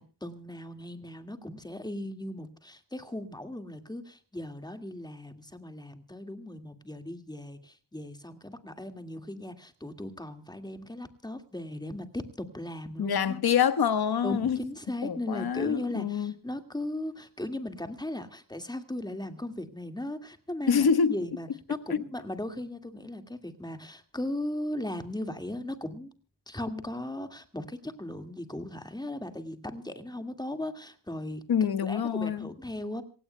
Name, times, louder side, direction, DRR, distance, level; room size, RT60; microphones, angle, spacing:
voice 1, 0.0-13.4 14.2-26.1 26.5-31.4 31.8-33.0, left 1 dB, 10° left, 2.0 m, -37 dB
voice 2, 13.0-14.6 15.0-16.3 20.7-21.1 21.9-22.0 31.5-32.5, left 7 dB, 60° left, 1.4 m, -26 dB
27.0 x 17.0 x 2.2 m
wide cardioid pair, 140°, 42 cm